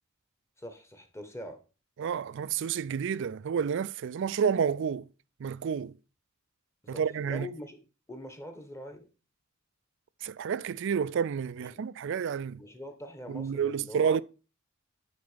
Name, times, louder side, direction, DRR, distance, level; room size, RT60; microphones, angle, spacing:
voice 1, 0.6-1.6 6.8-7.8 8.1-9.1 11.7-11.8 12.6-14.2, left 1 dB, 15° left, 1.4 m, -43 dB
voice 2, 2.0-5.1 5.4-5.9 6.9-7.5 10.2-12.6 13.3-14.2, right 7 dB, 60° right, 0.4 m, -30 dB
9.4 x 4.4 x 5.1 m
head